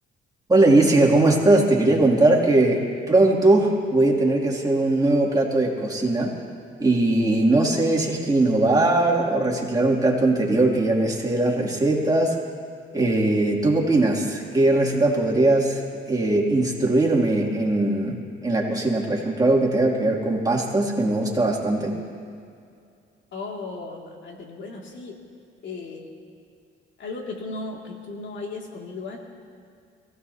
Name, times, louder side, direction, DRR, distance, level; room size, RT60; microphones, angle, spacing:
voice 1, 0.5-2.8 3.1-6.3 6.8-12.3 12.9-18.1 18.4-21.9, right 2 dB, 20° right, -2 dB, 2.8 m, -20 dB
voice 2, 23.3-25.2 25.6-26.1 27.0-29.2, left 3 dB, 65° left, 0 dB, 2.5 m, -35 dB
23.0 x 16.0 x 2.9 m, 2.4 s
cardioid pair, 90°, 20 cm